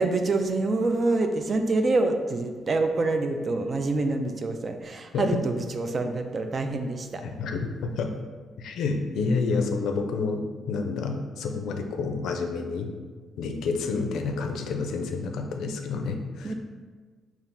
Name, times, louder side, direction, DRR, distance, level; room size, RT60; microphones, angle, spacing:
voice 1, 0.0-7.2 16.4-16.5, right 2 dB, 40° right, 6 dB, 0.3 m, -26 dB
voice 2, 7.2-8.1 8.6-12.9 13.4-16.5, left 4 dB, 80° left, 4 dB, 0.4 m, -29 dB
4.0 x 2.4 x 3.5 m, 1.5 s
cardioid pair, 90°, 0 cm